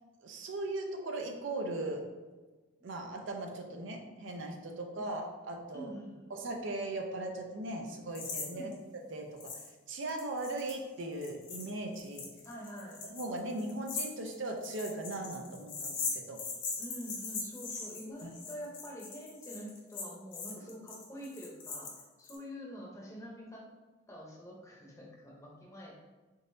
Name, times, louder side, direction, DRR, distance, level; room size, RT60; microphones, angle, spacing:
voice 1, 0.2-2.0 2.8-5.9 6.3-8.7 9.1-9.5 9.9-12.2 13.0-16.4 18.2-18.3 20.6-20.7, right 2 dB, 65° right, 2 dB, 0.5 m, -38 dB
voice 2, 5.7-6.3 8.5-8.8 12.4-13.0 16.8-23.7 24.1-26.0, equal, 15° left, -2 dB, 0.7 m, -46 dB
sound 1, 8.1-8.5 8.7-8.8 9.4-9.7 10.0-22.3, left 4 dB, 60° left, 0.9 m, -40 dB
3.9 x 3.7 x 2.6 m, 1.2 s
head